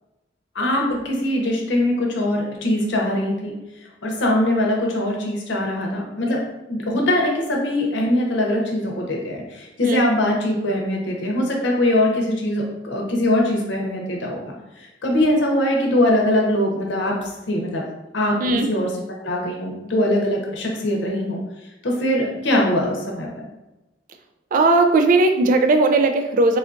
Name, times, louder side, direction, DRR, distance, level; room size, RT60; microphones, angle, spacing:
voice 1, 0.5-3.5 4.0-6.4 6.7-17.8 18.1-18.9 19.2-21.4 21.8-23.3, left 1 dB, 75° left, -1 dB, 0.7 m, -22 dB
voice 2, 24.5-26.6, right 3 dB, 45° right, 5 dB, 0.3 m, -17 dB
3.6 x 2.4 x 2.6 m, 1.0 s
head